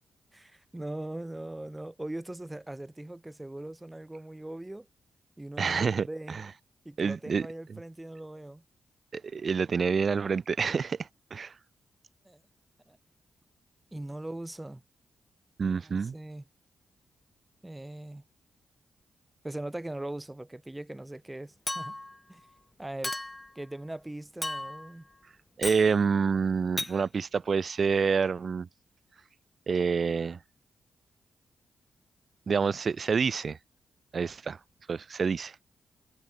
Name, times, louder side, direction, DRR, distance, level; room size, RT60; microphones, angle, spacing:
voice 1, 0.3-4.9 5.4-6.4 6.9-8.6 12.3-12.4 12.9-13.0 13.9-14.8 15.8-16.4 17.6-18.2 19.4-22.0 22.3-22.4 22.8-23.2 23.6-25.0, right 1 dB, 15° right, 1.9 m, -40 dB
voice 2, 5.6-6.5 7.0-7.8 9.1-11.5 15.6-16.1 25.6-28.7 29.7-30.4 32.5-33.6 34.1-34.6 34.9-35.6, right 5 dB, 55° right, 0.4 m, -28 dB
Chink clink, 21.7-22.2 23.0-23.5 24.4-24.9 25.6-25.9 26.8-27.0, left 1 dB, 20° left, 0.6 m, -34 dB
hypercardioid pair, 40°, 0 cm